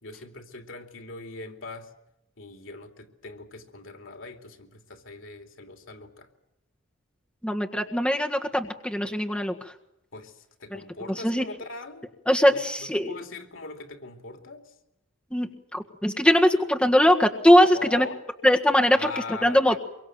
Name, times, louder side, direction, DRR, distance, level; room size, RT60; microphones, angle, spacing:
voice 1, 0.0-1.9 2.4-6.3 10.1-12.1 12.5-14.7 17.7-18.2 18.9-19.8, left 3 dB, 85° left, 5 dB, 3.0 m, -41 dB
voice 2, 7.4-9.7 10.7-10.8 11.1-11.4 12.3-13.1 15.3-18.1 18.4-19.8, equal, 5° left, 3 dB, 1.7 m, -21 dB
25.0 x 23.5 x 7.7 m, 0.88 s
head